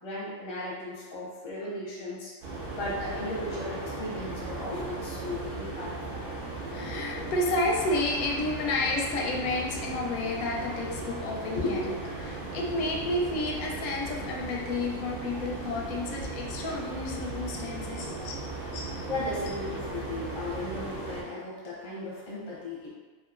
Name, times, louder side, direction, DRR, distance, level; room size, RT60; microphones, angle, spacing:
voice 1, 0.0-2.4 2.7-6.2 11.5-11.9 17.9-18.1 18.7-22.9, left 1 dB, 30° left, -6 dB, 0.5 m, -36 dB
sound 1, 2.4-21.2, right 3 dB, 65° right, 0.6 m, -37 dB
voice 2, 6.6-11.9 12.3-18.4, left 2 dB, 90° left, -1 dB, 1.0 m, -31 dB
2.8 x 2.6 x 2.4 m, 1.4 s
omnidirectional pair, 1.5 m